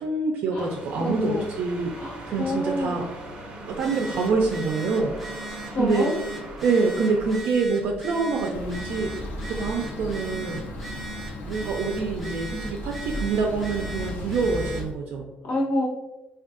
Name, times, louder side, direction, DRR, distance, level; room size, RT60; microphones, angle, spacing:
voice 1, 0.0-1.9 2.3-3.0 3.7-5.4 5.8-6.1 6.6-9.1 9.5-10.6 11.4-15.2, right 4 dB, 60° right, 0 dB, 0.4 m, -26 dB
sound 1, 0.6-7.4, right 1 dB, 35° right, 0.7 m, -40 dB
voice 2, 1.0-1.5 1.9-3.0 5.7-6.1 15.4-15.8, left 1 dB, 65° left, -2 dB, 0.9 m, -27 dB
Telephone, 3.7-14.9, right 2 dB, ahead, 0.5 m, -38 dB
sound 2, 8.5-14.8, left 1 dB, 80° left, 0.6 m, -35 dB
3.4 x 2.3 x 2.4 m, 1.0 s
cardioid pair, 145°, 3 cm